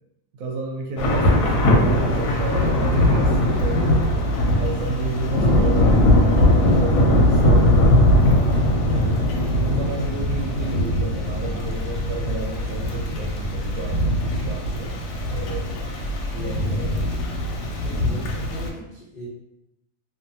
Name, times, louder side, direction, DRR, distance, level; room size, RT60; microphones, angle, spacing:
voice 1, 0.3-4.0 4.6-8.1 8.9-15.7 16.3-17.1, right 3 dB, 65° right, 0 dB, 0.9 m, -31 dB
Thunder / Rain, 1.0-18.7, left 1 dB, 90° left, 1.1 m, -20 dB
voice 2, 17.5-19.3, equal, 65° left, -7 dB, 0.5 m, -39 dB
2.7 x 2.4 x 2.6 m, 0.86 s
omnidirectional pair, 1.7 m